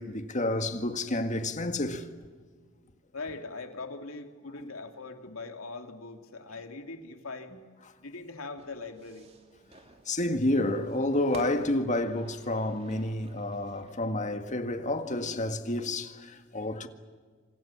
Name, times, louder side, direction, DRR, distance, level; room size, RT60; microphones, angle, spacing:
voice 1, 0.0-2.1 4.6-4.7 10.1-16.9, left 1 dB, 35° left, 1.8 m, -30 dB
voice 2, 3.1-7.5 8.0-9.3, left 3 dB, 85° left, 2.8 m, -41 dB
Fire / Fireworks, 8.6-14.1, right 2 dB, 30° right, 3.0 m, -51 dB
27.0 x 27.0 x 7.4 m
head